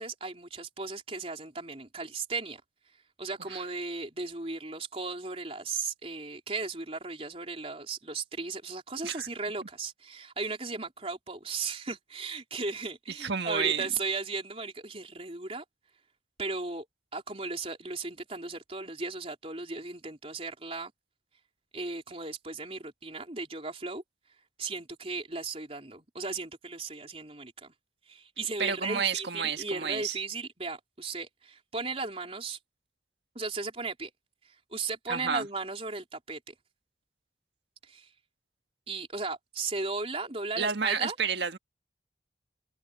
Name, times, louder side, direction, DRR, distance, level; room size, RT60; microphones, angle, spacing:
voice 1, 0.0-2.6 3.2-15.6 16.4-16.8 17.1-20.9 21.7-24.0 24.6-27.7 28.1-32.6 33.3-34.1 34.7-36.5 37.8-38.1 38.9-41.2, right 3 dB, 35° right, 4.2 m, -36 dB
voice 2, 13.1-13.9 28.6-30.2 35.1-35.5 40.6-41.6, right 6 dB, 75° right, 1.6 m, -30 dB
open air
head